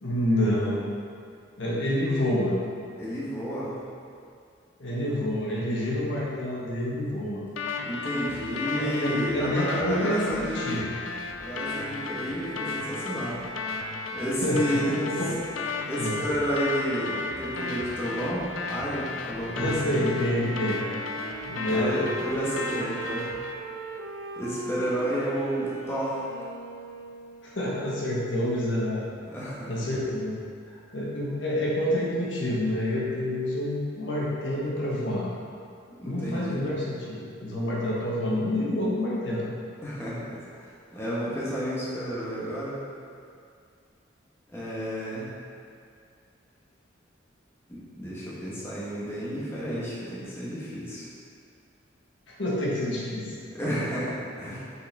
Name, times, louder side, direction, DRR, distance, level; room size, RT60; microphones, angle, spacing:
voice 1, 0.0-0.8 1.6-2.6 4.8-7.4 8.7-10.9 14.4-15.4 16.0-16.2 19.5-20.8 21.4-22.1 27.4-29.1 29.4-30.4 30.9-35.3 36.0-39.5 52.4-53.3, left 1 dB, 70° left, -6 dB, 1.4 m, -28 dB
voice 2, 3.0-3.8 7.8-10.8 11.4-13.4 14.1-15.2 15.9-19.9 21.7-23.3 24.4-26.3 29.3-29.7 36.0-36.6 39.8-42.8 44.5-45.3 47.7-51.1 53.5-54.7, equal, 15° left, -9 dB, 1.3 m, -31 dB
sound 1, 7.6-23.5, left 3 dB, 85° left, 0.5 m, -34 dB
Wind instrument woodwind instrument, 19.9-27.6, right 2 dB, 85° right, 0.6 m, -39 dB
6.4 x 5.5 x 3.5 m, 2.3 s
head